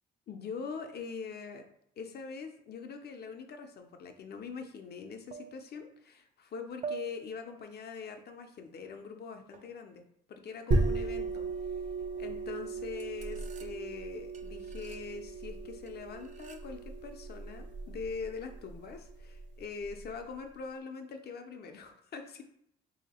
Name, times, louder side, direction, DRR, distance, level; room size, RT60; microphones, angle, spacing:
voice 1, 0.3-1.6 2.0-11.5 12.2-22.4, left 5 dB, 55° left, 6 dB, 0.6 m, -43 dB
sound 1, 4.1-4.3 5.3-5.9 6.8-7.6 9.5-9.8 11.3-11.8 12.2-12.4 13.0-14.0 14.3-15.1 15.9-16.8, right 6 dB, 40° right, 0.4 m, -46 dB
sound 2, 10.7-20.1, right 3 dB, 70° right, 0.9 m, -36 dB
3.3 x 2.8 x 4.1 m, 0.72 s
cardioid pair, 90°, 20 cm